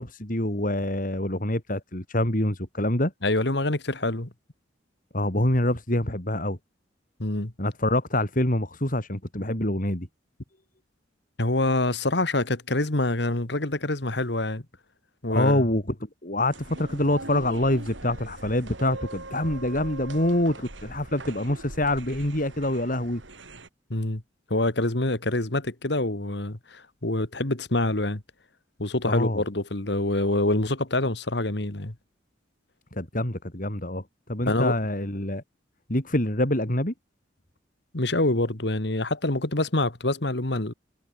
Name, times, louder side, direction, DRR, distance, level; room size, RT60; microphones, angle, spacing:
voice 1, 0.0-3.1 5.1-6.6 7.6-10.1 15.3-15.9 16.2-23.2 29.1-29.4 32.9-34.0 34.3-35.4 35.9-36.9, left 1 dB, 45° left, 4.4 m, -26 dB
voice 2, 3.2-4.3 7.2-7.5 11.4-14.6 15.2-15.6 23.9-24.2 24.5-28.2 28.8-31.9 34.5-34.8 37.9-40.7, left 2 dB, 65° left, 2.2 m, -26 dB
sound 1, 16.5-23.7, right 2 dB, 80° right, 4.9 m, -41 dB
head